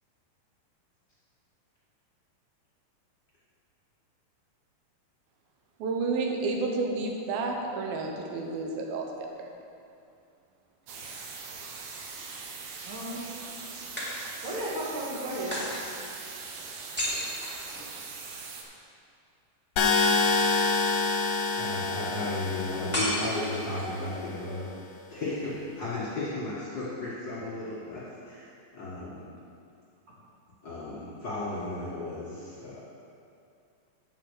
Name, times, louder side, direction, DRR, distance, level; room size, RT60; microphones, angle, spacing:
voice 1, 5.8-9.5, right 3 dB, 90° right, 1 dB, 2.8 m, -31 dB
sound 1, 10.9-11.9 14.0-14.7 15.5-18.3 22.9-24.0, equal, 5° right, 1.5 m, -35 dB
sound 2, 10.9-18.6, right 4 dB, 70° right, 2.0 m, -41 dB
voice 2, 12.8-13.3 14.4-15.6, right 1 dB, 50° right, -6 dB, 2.0 m, -34 dB
sound 3, 19.8-23.8, left 4 dB, 70° left, 1.8 m, -27 dB
voice 3, 21.6-24.7 25.1-29.3 30.6-32.8, left 2 dB, 40° left, -9 dB, 1.7 m, -34 dB
8.6 x 5.9 x 6.6 m, 2.5 s
omnidirectional pair, 4.1 m